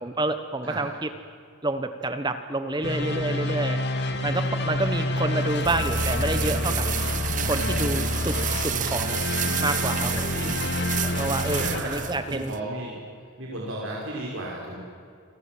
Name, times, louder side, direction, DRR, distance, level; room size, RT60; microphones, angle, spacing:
voice 1, 0.0-1.1 1.6-3.8 4.2-6.9 7.4-9.2 9.6-10.3 11.0-12.5, right 2 dB, 20° right, 9 dB, 1.1 m, -28 dB
sound 1, 2.8-11.8, left 1 dB, 50° left, 2.5 m, -27 dB
sound 2, 4.7-12.6, right 12 dB, 35° right, 0.6 m, -32 dB
sound 3, 6.2-6.3 7.5-7.6 8.8-9.0 10.1-10.3 11.5-11.6, left 4 dB, 70° left, 4.6 m, -42 dB
voice 2, 10.3-10.7 11.5-13.0 13.4-14.8, right 1 dB, 70° right, -3 dB, 5.5 m, -34 dB
29.0 x 24.0 x 7.7 m, 2.3 s
head